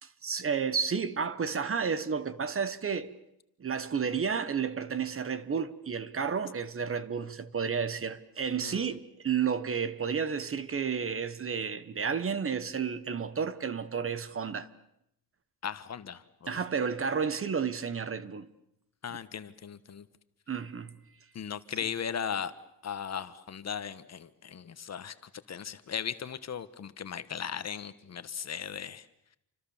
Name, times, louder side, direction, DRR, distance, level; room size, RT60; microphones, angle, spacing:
voice 1, 0.0-3.1 3.6-14.7 16.5-18.5 20.5-21.0, right 6 dB, 35° right, 1.2 m, -31 dB
voice 2, 8.6-8.9 15.6-16.6 19.0-20.1 21.3-22.5 22.8-29.1, left 7 dB, 45° left, 1.3 m, -37 dB
28.5 x 25.5 x 7.2 m
cardioid pair, 135°, 38 cm